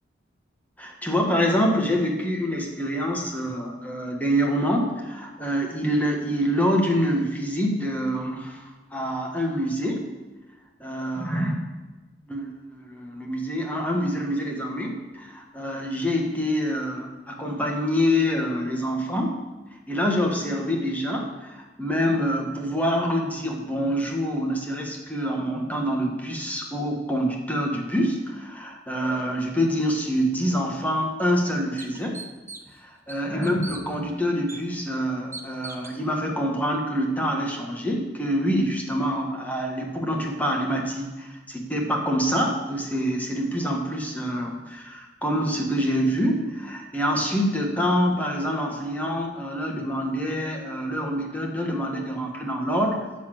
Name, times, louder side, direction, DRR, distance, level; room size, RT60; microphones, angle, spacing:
voice 1, 0.8-8.6 8.9-10.1 10.8-11.5 12.3-19.4 19.9-32.2 32.8-53.0, equal, 10° left, 0 dB, 1.5 m, -26 dB
sound 1, 30.7-30.8 31.3-31.4 31.8-32.8 33.1-33.8 34.5-34.6 35.3-36.0, right 3 dB, 15° right, 0.8 m, -39 dB
13.0 x 4.3 x 7.7 m, 1.2 s
head